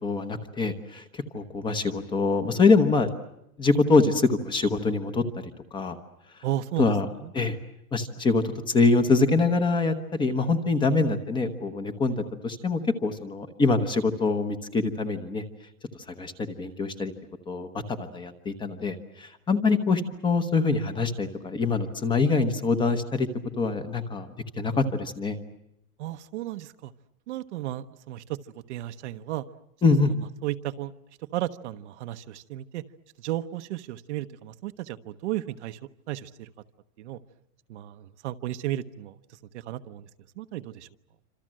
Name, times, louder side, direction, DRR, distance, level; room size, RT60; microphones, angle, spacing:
voice 1, 0.0-3.1 3.6-5.2 5.7-6.0 6.8-7.1 7.3-7.6 7.9-15.4 15.9-17.1 17.5-23.3 23.6-24.3 24.6-25.4 29.8-30.1, left 3 dB, 10° left, 9 dB, 1.1 m, -24 dB
voice 2, 6.4-6.9 7.2-7.3 26.0-26.9 27.3-28.4 28.7-29.5 30.0-30.1 30.4-30.9 31.3-32.8 33.2-35.8 36.1-36.5 37.0-37.2 37.7-40.1 40.4-40.9, right 14 dB, 50° right, 10 dB, 1.1 m, -34 dB
27.0 x 26.5 x 7.6 m, 0.82 s
supercardioid pair, 170°, 43 cm